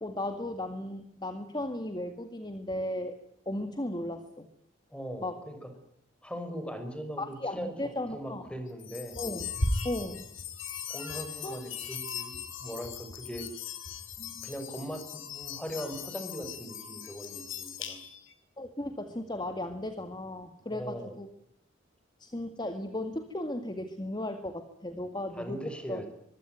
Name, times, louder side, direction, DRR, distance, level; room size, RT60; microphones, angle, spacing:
voice 1, 0.0-3.2 3.5-4.5 5.2-5.4 7.2-8.5 9.2-9.5 9.8-10.3 11.4-11.6 18.6-21.3 22.2-26.0, left 1 dB, 20° left, 8 dB, 2.0 m, -36 dB
voice 2, 4.9-5.7 6.2-7.7 8.1-9.2 10.9-13.4 14.4-18.0 20.7-21.2 25.3-26.1, equal, 5° left, 7 dB, 6.1 m, -40 dB
sound 1, 8.8-18.3, left 4 dB, 90° left, 4.8 m, -38 dB
24.0 x 23.5 x 9.3 m, 0.70 s
head